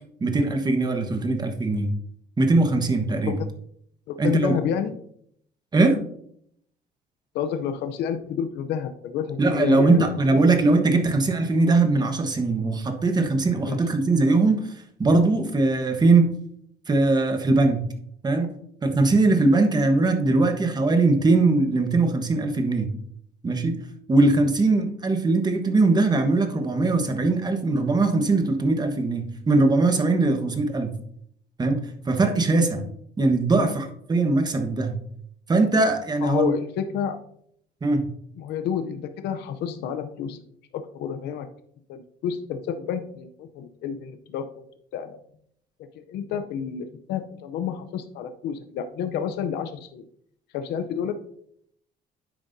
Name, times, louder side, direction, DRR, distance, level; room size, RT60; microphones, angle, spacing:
voice 1, 0.2-1.9 2.4-3.3 4.2-4.6 5.7-6.0 9.4-14.7 15.0-16.3 16.9-17.8 18.2-18.5 18.8-22.9 23.4-23.8 24.1-30.9 31.6-32.8 33.2-35.0 35.5-36.5 37.8-38.1, right 3 dB, 25° right, 6 dB, 1.3 m, -21 dB
voice 2, 4.1-5.0 7.3-10.4 13.7-13.8 33.6-33.7 36.2-37.2 38.4-40.4 40.7-41.5 41.9-44.5 44.9-45.2 46.0-50.0 50.5-51.2, left 8 dB, 80° left, 8 dB, 0.7 m, -29 dB
9.6 x 7.6 x 2.7 m, 0.68 s
cardioid pair, 110°, 17 cm